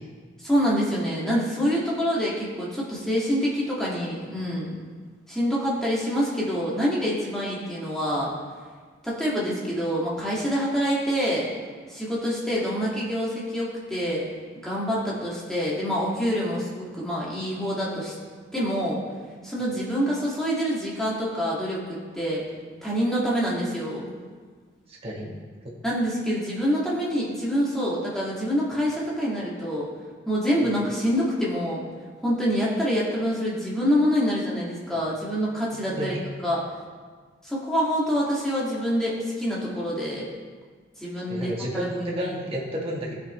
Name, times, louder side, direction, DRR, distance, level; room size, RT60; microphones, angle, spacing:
voice 1, 0.4-4.8 5.3-8.3 9.0-11.5 11.9-14.3 14.6-18.1 18.5-19.0 19.4-22.5 22.8-24.0 25.8-29.9 30.3-31.8 32.2-36.1 36.4-36.6 37.4-40.3 41.0-41.9, equal, 5° left, -7 dB, 1.8 m, -26 dB
voice 2, 24.9-25.3 30.6-30.7 35.7-36.2 41.3-43.1, equal, 30° right, -4 dB, 1.4 m, -31 dB
14.0 x 5.4 x 3.1 m, 1.5 s
head